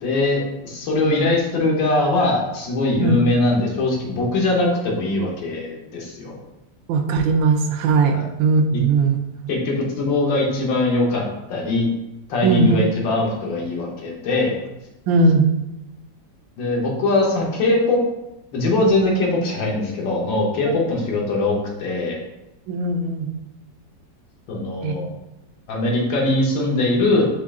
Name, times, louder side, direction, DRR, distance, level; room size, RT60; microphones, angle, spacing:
voice 1, 0.0-6.3 8.1-8.3 8.7-8.8 9.5-11.2 11.5-11.9 12.3-14.6 16.6-18.0 18.5-22.2 24.5-25.1 25.7-27.3, left 2 dB, 85° left, -1 dB, 1.7 m, -21 dB
voice 2, 6.9-9.5 12.4-12.8 15.1-15.5 22.7-23.3 24.8-24.9, right 3 dB, 90° right, 5 dB, 1.3 m, -19 dB
5.3 x 2.4 x 3.5 m, 0.92 s
omnidirectional pair, 2.0 m